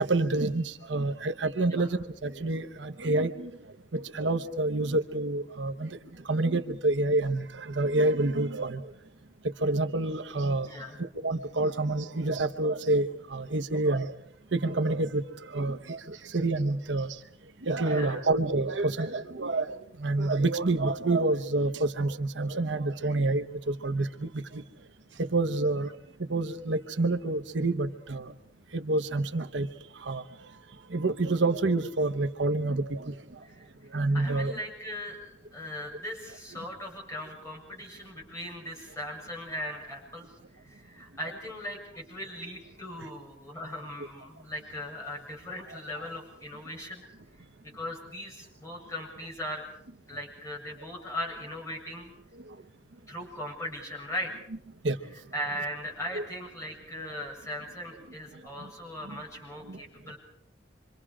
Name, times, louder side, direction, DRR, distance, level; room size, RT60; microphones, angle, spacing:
voice 1, 0.0-3.5 3.9-6.0 6.3-8.8 9.6-10.7 11.0-14.1 14.5-17.2 17.6-24.6 25.2-25.9 26.3-28.3 28.7-29.7 30.0-30.2 30.9-33.1 33.9-34.6 54.8-55.0 56.1-56.2 59.1-59.2 59.7-59.8, right 2 dB, 70° right, 8 dB, 1.0 m, -28 dB
voice 2, 10.7-11.0 17.9-18.2 33.4-33.6 33.9-40.3 40.6-47.0 47.7-49.6 50.1-52.1 53.1-54.5 55.1-60.2, left 1 dB, 15° left, -1 dB, 7.2 m, -39 dB
26.5 x 25.0 x 5.0 m, 0.72 s
head